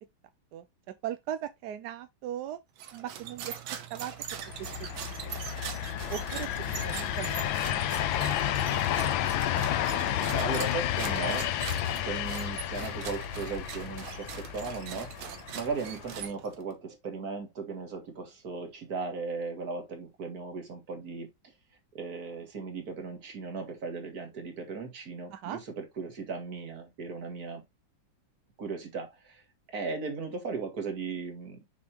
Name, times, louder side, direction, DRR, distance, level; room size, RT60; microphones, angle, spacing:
voice 1, 1.0-2.6 2.9-3.5 3.9-4.1 4.8-5.4 6.1-6.5 6.8-7.3 8.2-8.7 25.3-25.6, right 11 dB, 70° right, 1.0 m, -38 dB
sound 1, 2.8-16.7, right 9 dB, 90° right, 1.7 m, -42 dB
sound 2, 4.3-16.3, left 11 dB, 80° left, 1.4 m, -31 dB
voice 2, 10.3-11.5 11.9-15.3 15.5-21.3 21.9-27.6 28.6-29.4 29.7-31.6, right 4 dB, 50° right, 2.2 m, -37 dB
7.0 x 5.3 x 2.9 m
omnidirectional pair, 2.2 m